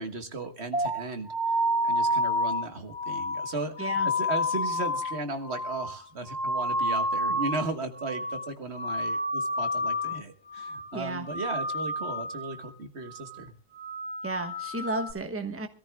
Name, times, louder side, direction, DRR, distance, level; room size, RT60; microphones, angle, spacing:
voice 1, 0.0-13.5, right 3 dB, 60° right, 7 dB, 1.7 m, -36 dB
sound 1, 0.7-7.7 8.0-8.5 8.7-10.2 10.5-10.9 11.2-12.7 13.0-13.4 13.7-15.1, left 1 dB, 65° left, 2.7 m, -29 dB
voice 2, 3.8-4.1 10.9-11.3 14.2-15.7, right 2 dB, 10° right, 6 dB, 1.2 m, -33 dB
25.5 x 14.0 x 2.3 m, 0.38 s
omnidirectional pair, 1.2 m